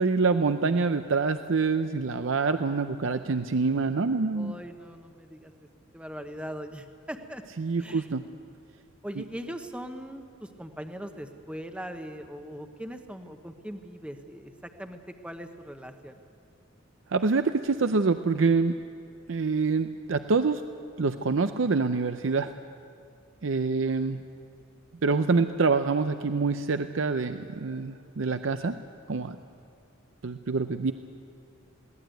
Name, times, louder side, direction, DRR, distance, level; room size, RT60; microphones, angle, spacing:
voice 1, 0.0-4.5 7.6-8.2 17.1-18.8 19.3-20.6 21.0-22.5 23.4-24.2 25.0-28.8 29.1-29.4 30.2-30.9, right 4 dB, 65° right, 9 dB, 0.6 m, -26 dB
voice 2, 4.3-5.5 5.9-7.4 7.8-8.1 9.0-16.2, equal, 5° right, 6 dB, 0.9 m, -40 dB
21.5 x 17.5 x 9.1 m, 2.5 s
head